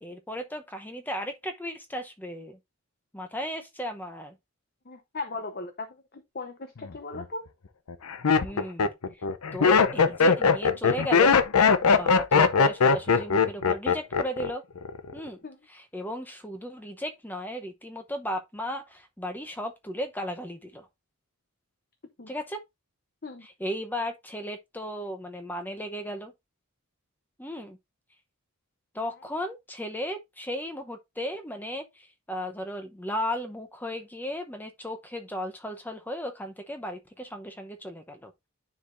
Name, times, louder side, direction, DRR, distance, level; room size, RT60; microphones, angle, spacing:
voice 1, 0.0-2.6 3.1-4.4 8.4-8.9 9.5-11.4 11.9-14.6 15.1-15.4 15.7-20.9 22.3-22.6 23.4-26.3 27.4-27.8 28.9-38.3, equal, 10° left, 0.8 m, -35 dB
voice 2, 4.9-5.9 6.1-7.5 15.4-15.6 22.2-22.3 23.2-23.5, left 3 dB, 45° left, 0.8 m, -37 dB
Laughter, 6.8-7.2 7.9-14.5 14.8-15.3, left 5 dB, 85° left, 0.7 m, -21 dB
10.0 x 4.8 x 2.6 m
head